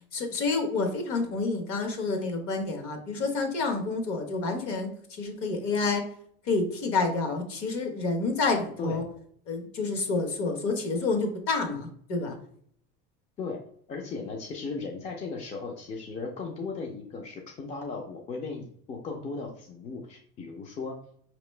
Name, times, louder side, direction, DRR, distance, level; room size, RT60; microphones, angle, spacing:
voice 1, 0.1-4.9 5.2-6.0 6.4-9.0 9.5-12.3, left 3 dB, 50° left, 4 dB, 1.1 m, -28 dB
voice 2, 13.9-21.0, left 4 dB, 25° left, 1 dB, 0.4 m, -36 dB
5.3 x 2.9 x 3.2 m, 0.63 s
cardioid pair, 165°, 30 cm